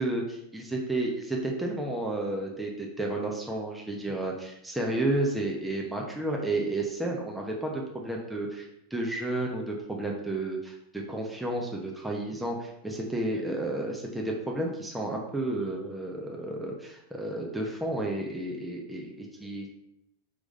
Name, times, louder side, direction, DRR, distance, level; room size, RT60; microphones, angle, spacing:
voice 1, 0.0-19.7, right 2 dB, 5° right, -1 dB, 1.0 m, -32 dB
5.0 x 4.8 x 5.2 m, 0.81 s
figure-of-eight pair, 90°, 0 cm